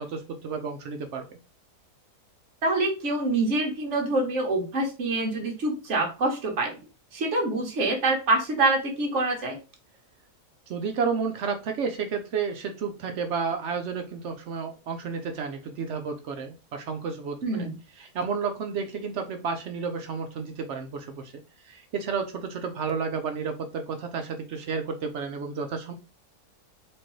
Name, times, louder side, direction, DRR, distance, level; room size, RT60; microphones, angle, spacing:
voice 1, 0.0-1.4 10.7-17.4 18.0-21.3 21.6-25.9, right 5 dB, 70° right, 5 dB, 0.7 m, -31 dB
voice 2, 2.6-6.7 7.1-9.6 17.4-17.7, right 2 dB, 50° right, 1 dB, 1.3 m, -25 dB
4.3 x 2.5 x 3.0 m, 0.31 s
omnidirectional pair, 1.7 m